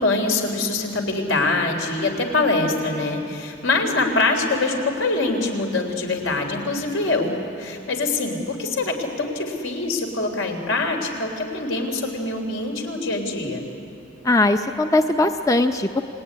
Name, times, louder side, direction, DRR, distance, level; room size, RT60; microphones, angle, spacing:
voice 1, 0.0-7.3 7.6-13.6, left 3 dB, 80° left, 3 dB, 3.9 m, -24 dB
voice 2, 14.2-16.0, left 2 dB, 15° left, 6 dB, 0.6 m, -19 dB
28.5 x 20.0 x 9.8 m, 2.8 s
head